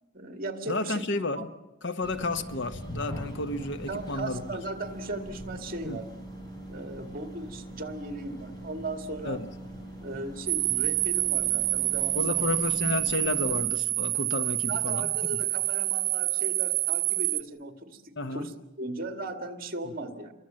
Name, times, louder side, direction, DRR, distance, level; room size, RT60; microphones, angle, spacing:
voice 1, 0.1-1.5 3.9-6.0 6.7-9.4 10.0-12.5 14.7-18.5 18.8-20.3, right 2 dB, 50° right, 2.2 m, -37 dB
voice 2, 0.7-1.5 1.8-4.6 5.9-6.0 9.2-9.5 12.1-15.1 18.2-18.5, left 2 dB, 65° left, 1.1 m, -31 dB
sound 1, 2.0-13.7, right 1 dB, 20° left, 5.1 m, -42 dB
sound 2, 10.5-17.4, right 17 dB, 85° right, 0.9 m, -27 dB
28.0 x 23.5 x 7.7 m
head